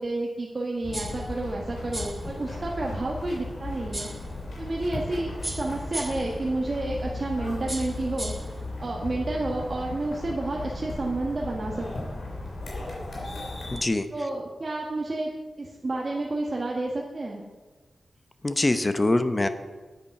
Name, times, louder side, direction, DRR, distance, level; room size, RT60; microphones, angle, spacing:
voice 1, 0.0-4.1 4.6-8.3 8.8-11.9 14.1-15.3 15.6-17.4, right 2 dB, 40° right, -2 dB, 1.3 m, -30 dB
sound 1, 0.8-13.8, left 2 dB, 80° left, 3.5 m, -36 dB
sound 2, 0.9-1.3 1.9-2.3 3.9-4.3 5.4-6.3 7.7-8.5, right 1 dB, 15° right, 1.1 m, -36 dB
voice 2, 13.7-14.3 18.4-19.5, left 2 dB, 25° left, 10 dB, 0.8 m, -24 dB
9.8 x 8.5 x 5.9 m, 1.3 s
wide cardioid pair, 95°, 0 cm